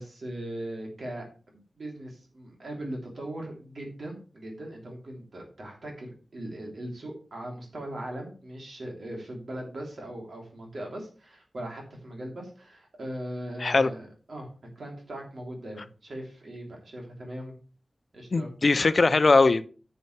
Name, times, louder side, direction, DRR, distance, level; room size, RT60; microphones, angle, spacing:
voice 1, 0.0-17.5 18.1-18.5, right 1 dB, 70° right, 3.2 m, -39 dB
voice 2, 13.6-13.9 18.3-19.7, left 3 dB, 55° left, 0.5 m, -20 dB
11.0 x 6.8 x 3.3 m
wide cardioid pair, 75°, 0 cm